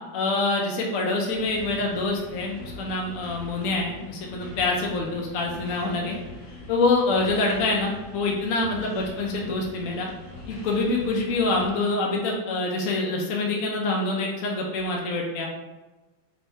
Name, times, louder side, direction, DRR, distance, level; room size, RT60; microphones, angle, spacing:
voice 1, 0.1-6.2 6.7-10.1 10.5-15.5, left 2 dB, 60° left, -1 dB, 0.8 m, -26 dB
sound 1, 1.3-11.7, left 2 dB, 35° left, 0.9 m, -42 dB
4.0 x 3.4 x 3.4 m, 1.1 s
omnidirectional pair, 2.0 m